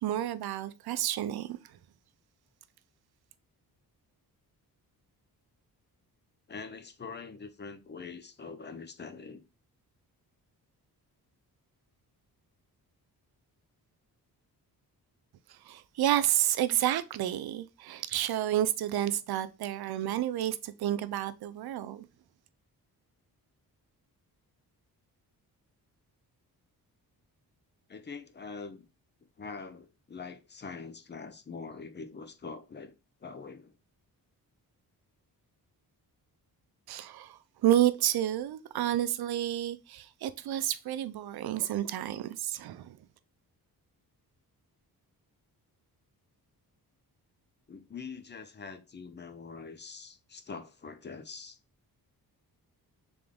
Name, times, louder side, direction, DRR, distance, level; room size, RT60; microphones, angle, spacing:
voice 1, 0.0-1.8 15.5-22.1 36.9-43.0, right 12 dB, 75° right, 0.6 m, -30 dB
voice 2, 6.5-9.4 27.9-28.9 29.4-32.9 33.2-33.7 47.7-51.6, left 5 dB, 30° left, 0.6 m, -44 dB
3.7 x 3.4 x 3.5 m
cardioid pair, 110°, 38 cm